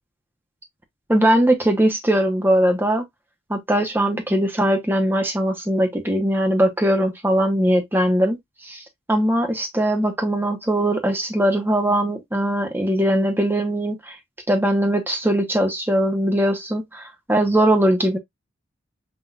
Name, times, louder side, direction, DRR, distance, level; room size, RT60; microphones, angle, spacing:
voice 1, 1.1-3.0 3.5-8.4 8.6-8.8 9.1-14.2 14.5-18.2, right 1 dB, 10° right, 0.8 m, -20 dB
5.8 x 2.4 x 2.5 m
head